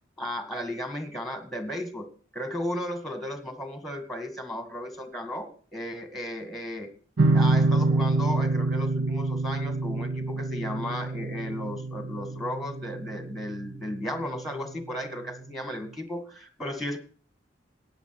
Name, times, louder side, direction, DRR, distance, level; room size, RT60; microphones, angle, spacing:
voice 1, 0.2-2.1 2.3-6.9 7.3-17.0, left 1 dB, ahead, 7 dB, 1.9 m, -35 dB
sound 1, 7.2-14.4, right 2 dB, 75° right, 1.1 m, -26 dB
15.0 x 9.2 x 6.0 m, 0.42 s
head